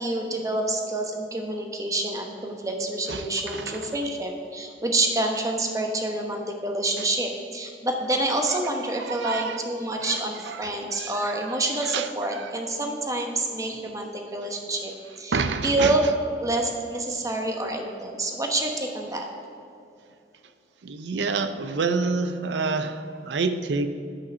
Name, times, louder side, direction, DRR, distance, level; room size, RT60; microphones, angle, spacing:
voice 1, 0.0-14.9 15.2-16.0 16.4-19.3, right 2 dB, 20° right, 2 dB, 1.0 m, -27 dB
voice 2, 3.1-4.0 7.0-7.1 9.0-9.6 10.0-10.2 10.5-12.5 15.3-16.0 20.8-23.9, right 4 dB, 80° right, 10 dB, 0.5 m, -29 dB
9.8 x 5.6 x 6.1 m, 2.6 s
head